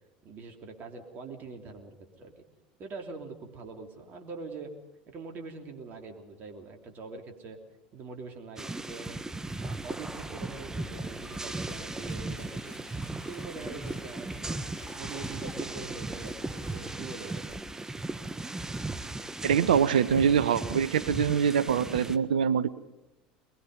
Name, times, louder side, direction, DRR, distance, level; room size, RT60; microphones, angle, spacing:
voice 1, 0.2-2.4 2.8-4.7 5.1-7.6 7.9-9.2 9.6-12.8 13.2-14.6 15.0-17.6, right 4 dB, 40° right, 3 dB, 3.1 m, -43 dB
sound 1, 8.6-22.2, right 2 dB, 10° right, 1.2 m, -37 dB
Engine, 9.8-18.2, left 2 dB, 20° left, 4.7 m, -51 dB
voice 2, 19.4-22.7, right 7 dB, 75° right, 16 dB, 0.9 m, -24 dB
22.5 x 21.5 x 5.4 m, 0.92 s
hypercardioid pair, 75°, 5 cm